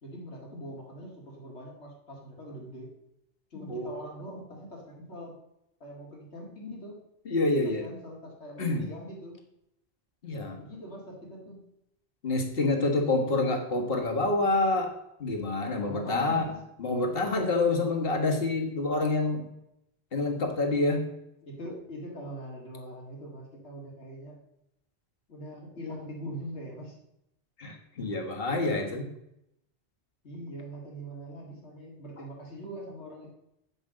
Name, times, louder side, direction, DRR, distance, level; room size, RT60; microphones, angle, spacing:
voice 1, 0.0-2.9 3.5-5.4 5.8-7.0 7.6-9.4 10.6-11.6 13.0-13.5 15.8-16.6 21.4-24.4 25.3-27.0 30.2-33.3, equal, 80° left, -1 dB, 2.5 m, -42 dB
voice 2, 3.5-3.9 7.2-7.8 8.6-8.8 10.2-10.6 12.2-14.9 15.2-16.5 16.8-19.5 20.1-21.0 27.6-29.1, left 2 dB, 60° left, 2 dB, 1.7 m, -27 dB
8.0 x 5.1 x 7.5 m, 0.80 s
omnidirectional pair, 1.1 m